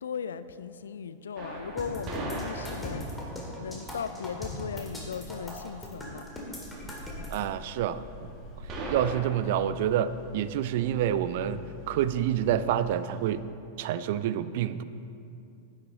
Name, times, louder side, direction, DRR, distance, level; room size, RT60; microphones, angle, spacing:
voice 1, 0.0-3.1 3.6-6.3, left 7 dB, 65° left, 13 dB, 0.3 m, -37 dB
sound 1, 1.4-9.2, right 2 dB, 30° right, 1.9 m, -41 dB
sound 2, 1.8-7.4, left 1 dB, 10° left, 2.1 m, -39 dB
voice 2, 7.3-8.0 8.9-13.4 13.8-14.8, right 10 dB, 50° right, 14 dB, 0.4 m, -28 dB
sound 3, 7.9-13.3, left 6 dB, 35° left, 1.9 m, -48 dB
10.5 x 9.7 x 3.8 m, 2.6 s
figure-of-eight pair, 90°, 0 cm